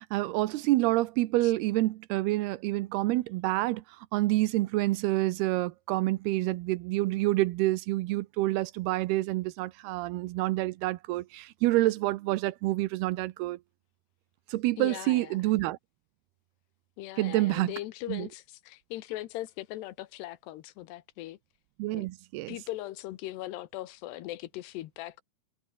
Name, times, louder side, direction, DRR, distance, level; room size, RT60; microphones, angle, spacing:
voice 1, 0.0-3.8 4.1-13.6 14.5-15.8 17.2-17.7 18.1-18.3 21.8-22.6, right 18 dB, 80° right, 2.7 m, -28 dB
voice 2, 14.8-15.4 17.0-21.4 21.9-22.1 22.5-25.2, left 15 dB, 90° left, 3.3 m, -39 dB
omnidirectional pair, 4.7 m